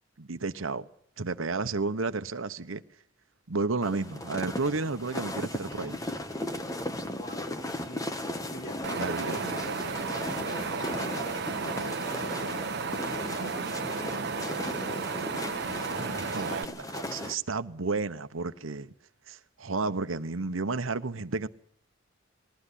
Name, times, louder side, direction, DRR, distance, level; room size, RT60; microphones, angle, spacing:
voice 1, 0.2-0.9 1.2-2.8 3.5-6.0 9.0-9.4 15.8-18.9 19.3-21.5, right 3 dB, 85° right, 1.0 m, -32 dB
sound 1, 3.8-17.3, left 1 dB, 20° left, 1.2 m, -36 dB
voice 2, 7.2-8.0 8.5-14.9, equal, 55° left, 3.8 m, -45 dB
Wind, 8.8-16.6, right 5 dB, 55° right, 0.9 m, -34 dB
20.0 x 14.5 x 10.0 m
head